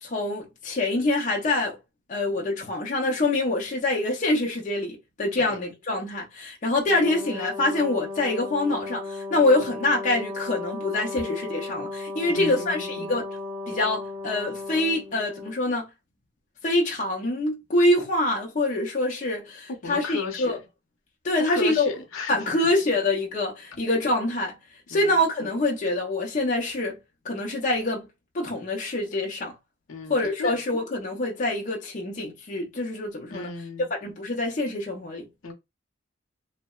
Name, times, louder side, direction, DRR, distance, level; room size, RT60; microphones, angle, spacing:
voice 1, 0.0-1.8 2.1-13.3 13.7-15.9 16.6-20.6 21.2-21.9 22.3-24.5 24.9-27.0 27.2-28.1 28.3-29.5 30.1-33.5 33.9-35.3, left 2 dB, 35° left, 0.5 m, -25 dB
Brass instrument, 6.9-15.6, left 3 dB, 20° right, 0.6 m, -35 dB
voice 2, 12.3-13.1 19.8-20.6 21.5-22.4 24.9-25.1 29.9-30.6 33.3-33.9 35.4-35.5, left 3 dB, 75° left, 0.7 m, -34 dB
2.7 x 2.0 x 2.2 m
head